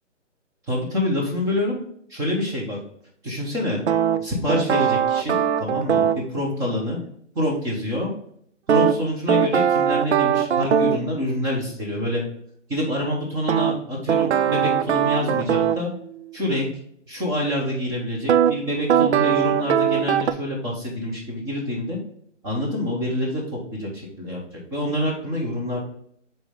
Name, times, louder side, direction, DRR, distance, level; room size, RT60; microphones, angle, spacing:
voice 1, 0.7-1.8 2.1-2.8 3.2-3.8 4.2-7.0 7.3-8.1 8.7-12.2 12.7-15.9 16.3-16.7 17.1-22.0 22.4-23.9 24.2-25.8, left 1 dB, 10° right, -2 dB, 1.0 m, -26 dB
sound 1, 3.9-6.2 8.7-11.1 13.5-15.8 18.3-18.5 18.9-20.3, right 9 dB, 65° right, 0.5 m, -20 dB
6.6 x 4.4 x 3.7 m, 0.67 s
hypercardioid pair, 160°, 37 cm